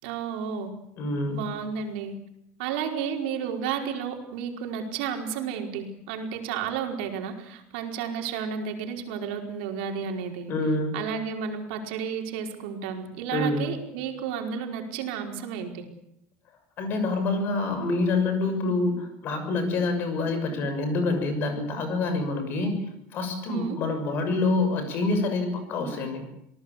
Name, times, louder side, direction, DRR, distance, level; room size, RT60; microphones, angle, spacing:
voice 1, 0.0-0.7 1.3-2.1 2.6-10.5 10.9-15.8 23.5-23.8, right 7 dB, 85° right, 3 dB, 4.8 m, -32 dB
voice 2, 1.0-1.4 10.5-11.0 13.3-13.7 16.8-22.8 23.1-26.2, left 3 dB, 40° left, 8 dB, 6.5 m, -26 dB
27.5 x 19.0 x 8.4 m, 0.77 s
cardioid pair, 175°, 5 cm